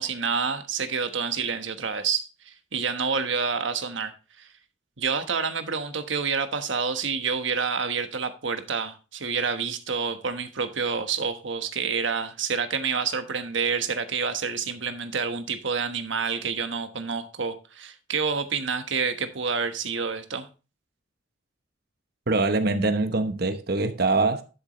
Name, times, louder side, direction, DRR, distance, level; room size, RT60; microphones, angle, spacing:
voice 1, 0.0-4.5 5.0-20.5, right 5 dB, 75° right, 1.3 m, -28 dB
voice 2, 22.3-24.4, right 3 dB, 55° right, 0.9 m, -23 dB
12.0 x 7.1 x 3.1 m
head